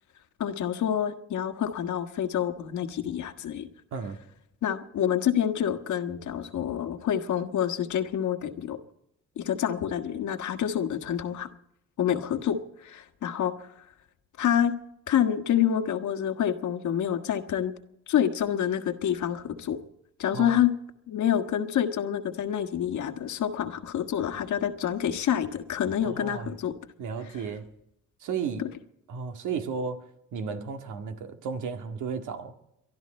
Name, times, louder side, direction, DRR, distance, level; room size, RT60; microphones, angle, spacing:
voice 1, 0.4-3.7 4.6-8.8 9.4-11.5 12.0-13.7 14.4-14.7 15.1-17.7 18.1-19.8 20.2-20.7 21.1-26.7 28.6-28.7, left 9 dB, 75° left, 8 dB, 1.6 m, -27 dB
voice 2, 26.0-26.5 27.0-27.7 28.2-28.6 29.1-30.0 30.3-32.5, right 6 dB, 80° right, 5 dB, 2.0 m, -33 dB
23.5 x 13.0 x 4.4 m, 0.81 s
cardioid pair, 90°, 30 cm